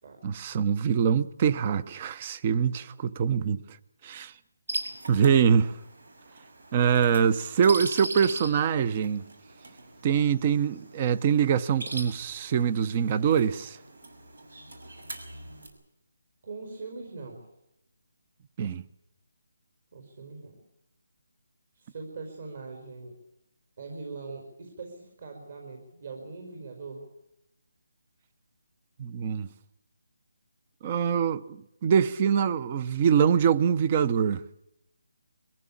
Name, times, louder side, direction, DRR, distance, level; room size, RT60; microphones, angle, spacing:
voice 1, 0.2-3.6 4.0-4.3 5.1-5.7 6.7-9.2 10.0-13.8 18.6-18.8 29.0-29.5 30.8-34.4, right 7 dB, 25° right, 0.8 m, -24 dB
sound 1, 4.7-15.7, right 2 dB, 75° right, 6.2 m, -41 dB
voice 2, 16.4-17.4 19.9-20.6 21.7-23.2 23.8-27.0, right 4 dB, 45° right, 4.9 m, -41 dB
22.5 x 15.0 x 8.6 m
hypercardioid pair, 170°, 0 cm